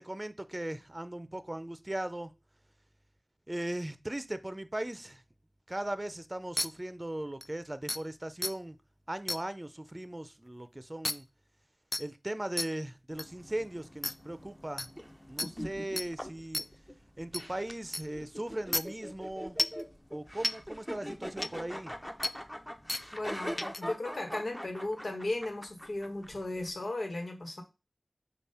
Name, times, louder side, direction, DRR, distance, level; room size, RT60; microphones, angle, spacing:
voice 1, 0.0-2.3 3.5-5.2 5.7-8.8 9.1-11.3 12.0-14.9 15.3-16.6 17.2-19.6 20.1-22.0, right 1 dB, 30° right, 0.6 m, -38 dB
sound 1, 6.6-6.7 7.4-7.5 7.9-8.0 8.4-8.5 9.3-9.4 11.0-11.1 11.9-12.0 12.6-12.7 13.2-13.3 14.0-14.1 14.8-14.9 15.4-15.5 16.0-16.1 16.5-16.7 17.3-17.4 17.9-18.0 18.7-18.8 19.6-19.8 20.4-20.5 21.4-21.5 22.2-22.3 22.9-23.0 23.6-23.8, left 1 dB, 35° left, 0.3 m, -31 dB
sound 2, 13.1-26.7, equal, 10° left, 0.7 m, -43 dB
voice 2, 23.1-27.6, left 2 dB, 80° left, 1.3 m, -36 dB
7.0 x 2.4 x 5.6 m
wide cardioid pair, 45°, 0 cm